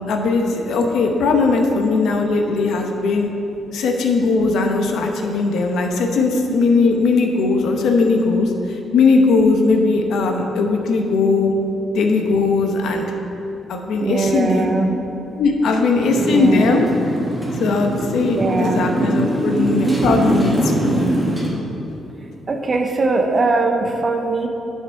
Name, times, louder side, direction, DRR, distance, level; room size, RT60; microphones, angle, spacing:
voice 1, 0.1-3.3 3.7-8.5 8.9-11.5 11.9-13.1 13.7-14.7 15.4-16.8 17.6-21.1, left 3 dB, 75° left, 3 dB, 0.8 m, -18 dB
voice 2, 14.0-15.0 16.2-16.8 17.3-17.4 18.2-18.9 21.5-21.7 22.2-24.5, right 3 dB, 35° right, 4 dB, 0.8 m, -21 dB
Motorcycle, 16.0-21.5, right 1 dB, 10° right, 1.6 m, -22 dB
8.5 x 5.6 x 4.6 m, 2.9 s
cardioid pair, 90°, 0 cm